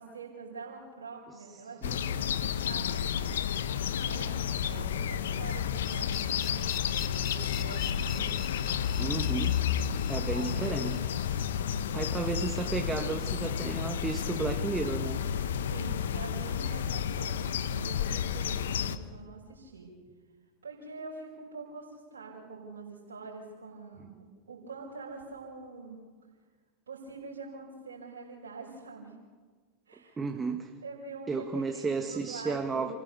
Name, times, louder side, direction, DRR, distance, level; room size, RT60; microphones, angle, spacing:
voice 1, 0.0-3.3 4.1-6.7 7.2-8.6 8.9-9.2 9.7-10.9 15.7-19.9 20.6-26.0 26.9-29.1 29.9-30.2 30.8-32.9, right 4 dB, 85° right, -5 dB, 5.2 m, -45 dB
sound 1, 1.8-19.0, left 8 dB, 75° left, 1.1 m, -31 dB
sound 2, 5.8-12.7, left 13 dB, 45° left, 0.9 m, -44 dB
voice 2, 9.0-9.6 10.1-11.0 11.9-15.3 30.2-30.7 31.3-32.9, right 4 dB, 20° right, 5 dB, 1.5 m, -33 dB
28.5 x 16.0 x 6.8 m, 1.5 s
hypercardioid pair, 95°, 0 cm